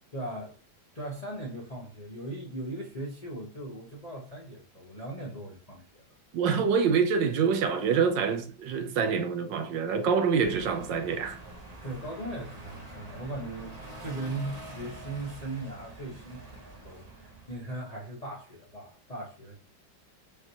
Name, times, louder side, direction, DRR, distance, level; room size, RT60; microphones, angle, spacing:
voice 1, 0.1-0.6 0.9-6.0 11.8-16.5 16.8-19.6, right 2 dB, 35° left, 0.6 m, -38 dB
voice 2, 6.3-11.4, right 6 dB, 75° right, 1.2 m, -26 dB
sound 1, 10.4-17.6, right 1 dB, 25° right, 1.0 m, -45 dB
5.2 x 3.2 x 2.8 m
omnidirectional pair, 2.1 m